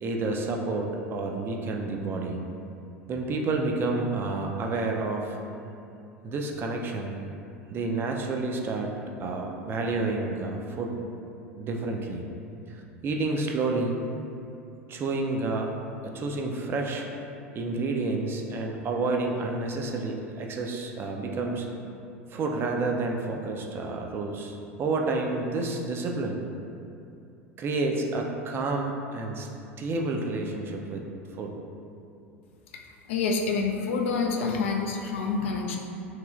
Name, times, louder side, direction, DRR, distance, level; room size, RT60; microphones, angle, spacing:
voice 1, 0.0-2.4 3.1-5.4 6.2-7.2 7.7-11.0 11.6-12.3 12.7-14.0 14.9-15.8 16.0-17.1 17.5-21.7 22.3-26.4 27.6-29.5 29.8-31.0 31.4-31.6, right 3 dB, 30° right, 1 dB, 0.4 m, -29 dB
voice 2, 33.1-35.8, left 4 dB, 65° left, 1 dB, 0.3 m, -27 dB
3.1 x 3.0 x 2.3 m, 2.7 s
figure-of-eight pair, 80°, 7 cm